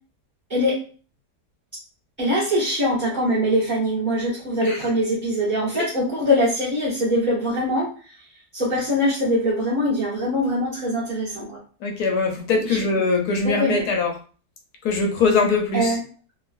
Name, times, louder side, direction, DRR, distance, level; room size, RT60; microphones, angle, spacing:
voice 1, 0.5-0.9 2.2-7.9 8.5-11.6 12.6-12.9 13.4-13.9 15.7-16.0, equal, 35° right, -8 dB, 0.9 m, -23 dB
voice 2, 11.8-14.1 14.8-15.9, left 4 dB, 70° left, 2 dB, 1.1 m, -22 dB
3.1 x 2.3 x 2.5 m, 0.37 s
omnidirectional pair, 1.9 m